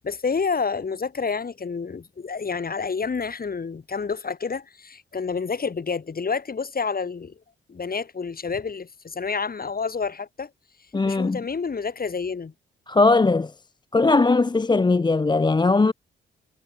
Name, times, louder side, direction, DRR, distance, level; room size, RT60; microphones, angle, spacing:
voice 1, 0.0-7.3 7.7-10.5 11.0-12.5, left 5 dB, 45° left, 4.0 m, -29 dB
voice 2, 10.9-11.4 12.9-13.5 13.9-15.9, left 3 dB, 20° left, 0.6 m, -19 dB
supercardioid pair, 50°, 21 cm